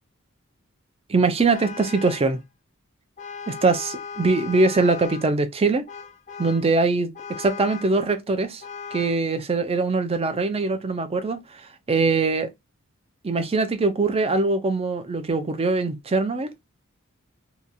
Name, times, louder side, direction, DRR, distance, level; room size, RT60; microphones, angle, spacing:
voice 1, 1.1-2.4 3.5-5.8 6.4-8.6 8.9-11.6 11.9-12.5 13.2-16.5, right 3 dB, 25° right, 0.5 m, -22 dB
Vehicle horn car horn honking, 1.5-2.4 3.2-5.3 5.9-6.7 7.1-8.0 8.6-9.2, left 5 dB, 35° left, 0.5 m, -38 dB
2.8 x 2.3 x 2.5 m
head